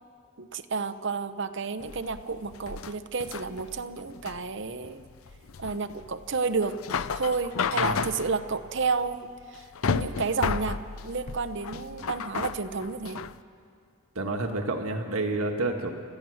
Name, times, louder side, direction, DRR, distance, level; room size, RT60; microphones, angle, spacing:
voice 1, 0.4-5.0 5.6-6.8 7.1-10.8 11.0-13.2, right 4 dB, 55° right, 10 dB, 0.8 m, -31 dB
sound 1, 1.8-13.4, left 5 dB, 75° left, 0.6 m, -33 dB
voice 2, 7.7-8.0 14.1-15.9, right 2 dB, 80° right, 3 dB, 1.5 m, -29 dB
29.5 x 13.5 x 6.4 m, 2.4 s
head